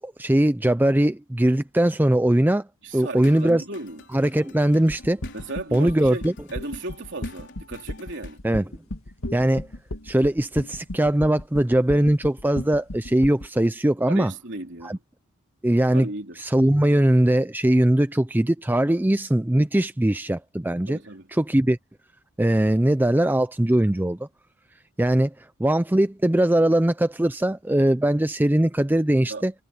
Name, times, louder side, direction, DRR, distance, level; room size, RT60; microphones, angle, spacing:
voice 1, 0.0-2.7 2.9-3.6 4.1-5.2 5.7-6.3 8.4-8.7 9.3-9.7 10.0-14.3 14.8-15.0 15.6-16.1 16.4-21.0 21.3-21.8 22.4-24.3 25.0-29.5, right 1 dB, 10° right, 0.4 m, -21 dB
voice 2, 2.8-4.0 5.3-8.4 14.1-15.0 15.9-16.4 20.9-21.3 29.3-29.5, right 2 dB, 55° right, 3.5 m, -35 dB
sound 1, 2.9-8.4, left 3 dB, 55° left, 4.6 m, -49 dB
sound 2, 4.9-13.5, left 1 dB, 75° left, 1.9 m, -34 dB
head